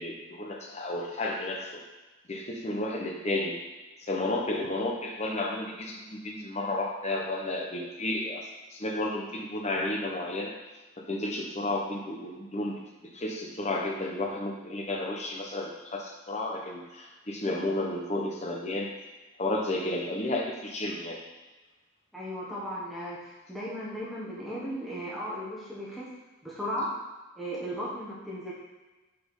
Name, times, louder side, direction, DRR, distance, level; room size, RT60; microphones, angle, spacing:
voice 1, 0.0-1.8 2.3-3.6 4.1-8.4 8.7-10.5 11.1-12.7 13.1-18.9 19.4-21.2, left 2 dB, 35° left, 0 dB, 0.9 m, -32 dB
voice 2, 22.1-26.1 26.4-26.9 27.4-28.5, equal, ahead, -8 dB, 1.2 m, -36 dB
5.9 x 4.2 x 4.8 m, 1.2 s
head